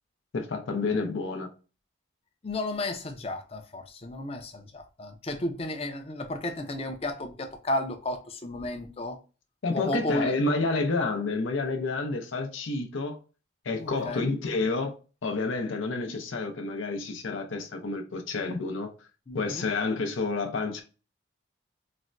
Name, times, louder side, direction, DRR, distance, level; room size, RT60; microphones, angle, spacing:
voice 1, 0.3-1.5 9.6-13.2 13.6-15.0 15.2-18.9 19.3-20.8, left 3 dB, 85° left, 0.6 m, -29 dB
voice 2, 2.4-9.2 9.7-10.3 13.8-14.3 19.3-19.7, left 1 dB, 30° left, 0.5 m, -33 dB
4.1 x 2.1 x 2.4 m
head